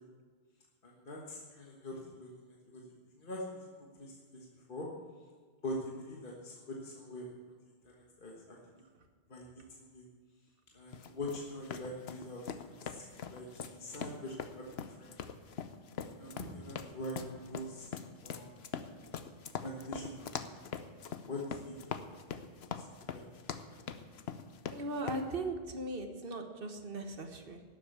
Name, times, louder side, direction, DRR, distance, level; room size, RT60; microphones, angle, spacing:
voice 1, 0.8-4.9 5.6-7.3 7.8-8.8 9.3-10.0 10.7-15.1 16.0-18.5 19.6-20.5 21.3-21.8 22.1-22.4 22.7-22.8 23.1-23.4 23.7-23.8, left 1 dB, 55° left, -2 dB, 1.7 m, -44 dB
sound 1, 10.9-25.3, left 7 dB, 90° left, 1.0 m, -43 dB
voice 2, 24.7-27.6, right 2 dB, 65° right, 5 dB, 1.5 m, -38 dB
12.0 x 8.1 x 8.1 m, 1.5 s
omnidirectional pair, 1.0 m